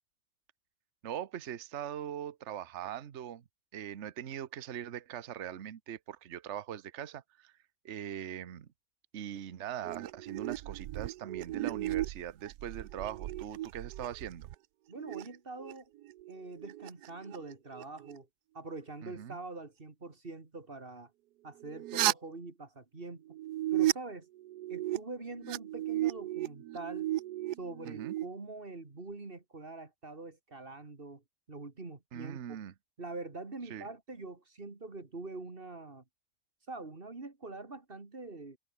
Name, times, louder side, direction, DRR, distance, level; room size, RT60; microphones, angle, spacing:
voice 1, 1.0-3.4 3.7-7.5 7.8-8.7 9.1-14.5 19.0-19.4 27.9-28.1 32.1-32.7 33.7-33.9, right 10 dB, 50° right, 1.2 m, -41 dB
sound 1, 9.8-14.5 15.0-15.7 16.0-18.2 21.6-22.1 23.3-23.9 24.4-25.0 25.3-28.3, right 14 dB, 85° right, 1.2 m, -35 dB
voice 2, 14.9-15.9 16.3-18.3 18.5-21.1 21.4-23.2 23.7-24.3 24.7-27.1 27.6-31.2 31.5-32.6 33.0-36.0 36.7-38.6, right 3 dB, 35° right, 2.4 m, -44 dB
omnidirectional pair, 1.7 m